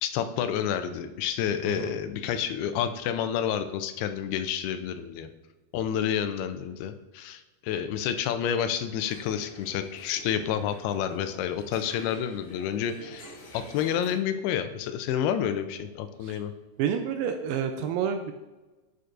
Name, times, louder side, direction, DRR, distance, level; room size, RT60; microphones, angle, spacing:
voice 1, 0.0-5.3 5.7-16.5, left 9 dB, 85° left, 9 dB, 2.5 m, -29 dB
sound 1, 9.0-14.1, equal, 40° left, 3.1 m, -48 dB
voice 2, 16.8-18.3, right 8 dB, 80° right, 7 dB, 2.2 m, -29 dB
11.0 x 6.6 x 2.5 m, 1.2 s
omnidirectional pair, 4.6 m